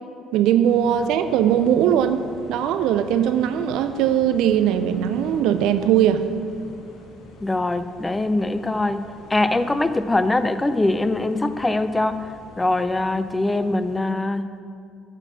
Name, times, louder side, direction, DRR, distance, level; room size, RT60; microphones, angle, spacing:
voice 1, 0.3-2.2 2.5-6.2, right 10 dB, 70° right, 10 dB, 0.5 m, -20 dB
sound 1, 0.6-14.0, left 1 dB, 65° left, 1.7 m, -45 dB
voice 2, 7.4-9.0 9.3-12.3 12.6-14.4, left 2 dB, 20° left, 11 dB, 0.6 m, -22 dB
8.9 x 6.0 x 7.3 m, 2.4 s
hypercardioid pair, 50°, 0 cm